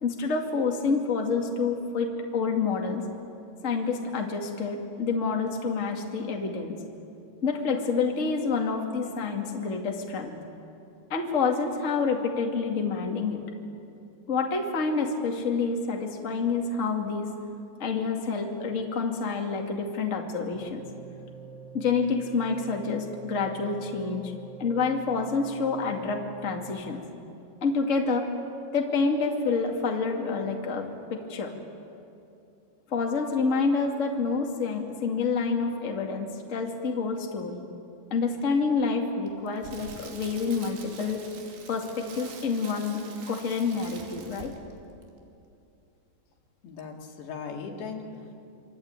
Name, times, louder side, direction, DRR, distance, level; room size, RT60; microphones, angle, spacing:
voice 1, 0.0-3.0 3.6-6.8 7.4-10.4 11.1-13.4 14.3-17.3 17.8-20.8 21.7-24.3 24.6-27.0 27.6-28.3 28.7-31.5 32.9-37.6 38.1-41.2 41.7-44.5, left 4 dB, 25° left, 1 dB, 1.9 m, -28 dB
sound 1, 20.5-26.8, right 5 dB, 20° right, 3.8 m, -45 dB
Crackle, 39.3-44.8 45.0-45.2, right 5 dB, 90° right, 4.9 m, -46 dB
voice 2, 46.6-48.4, left 5 dB, 85° left, 1 dB, 4.6 m, -38 dB
26.0 x 25.0 x 9.1 m, 2.7 s
omnidirectional pair, 4.8 m